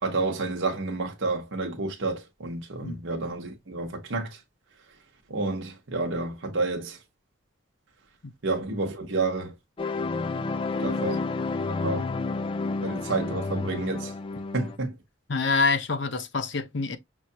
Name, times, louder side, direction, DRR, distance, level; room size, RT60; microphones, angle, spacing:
voice 1, 0.0-4.4 5.3-7.0 8.4-9.5 10.8-11.3 11.7-12.1 12.8-14.1 14.5-14.9, right 3 dB, 70° right, 1.0 m, -30 dB
sound 1, 9.8-14.8, left 3 dB, 25° left, 0.3 m, -30 dB
voice 2, 15.3-17.0, left 4 dB, 65° left, 0.7 m, -26 dB
6.2 x 2.3 x 2.8 m
head